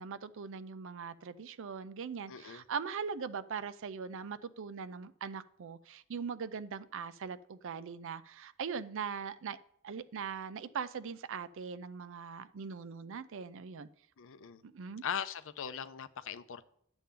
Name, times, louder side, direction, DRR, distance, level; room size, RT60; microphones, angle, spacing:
voice 1, 0.0-9.6 9.8-13.9 14.6-15.0, right 6 dB, 65° right, 0.5 m, -41 dB
voice 2, 2.3-2.6 14.2-14.6 15.0-16.6, left 8 dB, 65° left, 0.6 m, -40 dB
11.5 x 7.0 x 3.8 m
head